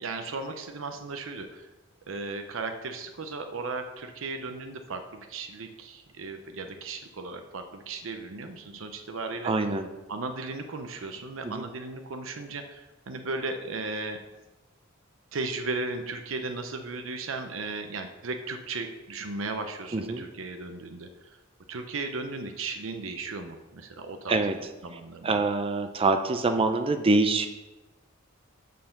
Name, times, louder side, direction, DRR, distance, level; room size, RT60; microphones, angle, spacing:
voice 1, 0.0-1.7 2.1-9.5 10.1-14.2 15.3-21.1 21.7-24.4 24.8-25.4, right 3 dB, 70° right, 6 dB, 0.7 m, -36 dB
voice 2, 9.4-9.9 11.4-11.6 19.9-20.2 24.3-24.6 25.2-27.5, right 3 dB, 25° right, 8 dB, 0.5 m, -25 dB
6.7 x 5.7 x 6.5 m, 1.1 s
head